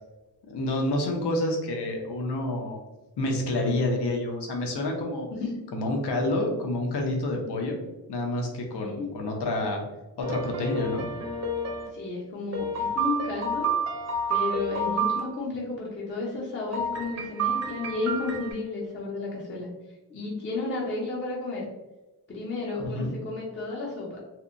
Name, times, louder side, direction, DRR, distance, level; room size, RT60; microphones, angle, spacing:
voice 1, 0.5-2.8 3.2-5.3 5.7-7.8 8.1-9.8 10.2-11.1 22.8-23.1, left 1 dB, 90° left, 1 dB, 0.6 m, -28 dB
voice 2, 5.3-5.6 8.8-9.1 11.9-13.7 14.3-19.7 20.1-21.7 22.3-24.2, left 3 dB, 30° left, -3 dB, 0.5 m, -32 dB
sound 1, 10.2-11.9 12.5-15.2 16.7-18.5, right 3 dB, 45° right, 0.4 m, -29 dB
2.7 x 2.1 x 2.4 m, 1.1 s
wide cardioid pair, 150°, 39 cm